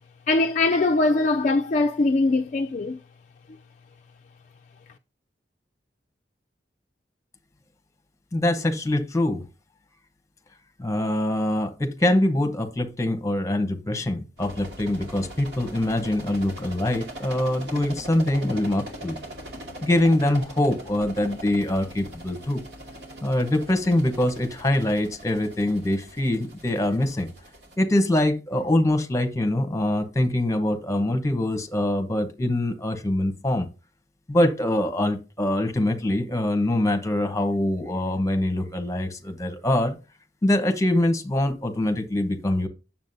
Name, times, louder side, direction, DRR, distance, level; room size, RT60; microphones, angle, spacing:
voice 1, 0.3-3.0, left 2 dB, 40° left, 0.4 m, -21 dB
voice 2, 8.3-9.4 10.8-19.2 19.8-22.6 23.2-27.3 27.8-33.7 34.3-40.0 40.4-42.7, left 1 dB, 15° left, 0.9 m, -24 dB
sound 1, 14.4-27.8, right 1 dB, 70° right, 2.4 m, -41 dB
9.2 x 7.2 x 2.7 m
head